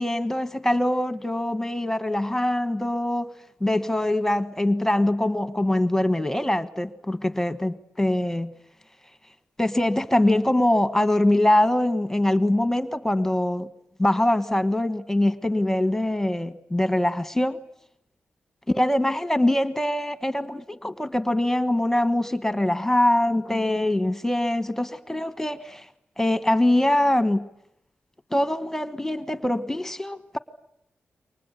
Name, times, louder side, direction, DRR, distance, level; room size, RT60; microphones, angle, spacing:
voice 1, 0.0-3.3 3.6-8.5 9.6-13.7 14.0-17.6 18.7-25.9 26.2-27.4 28.3-30.4, left 1 dB, 10° left, 1.3 m, -23 dB
29.0 x 24.5 x 8.2 m
wide cardioid pair, 90°, 4 cm